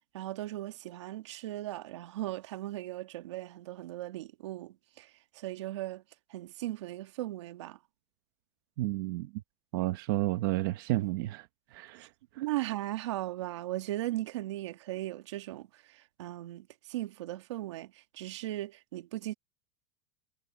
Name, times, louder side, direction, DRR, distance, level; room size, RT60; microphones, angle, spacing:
voice 1, 0.1-5.1 5.4-6.0 6.3-7.8 11.9-12.1 12.4-15.7 16.2-19.3, right 15 dB, 90° right, 2.2 m, -37 dB
voice 2, 8.8-9.4 9.7-12.4, right 18 dB, 55° right, 1.2 m, -32 dB
supercardioid pair, 180°, 14 cm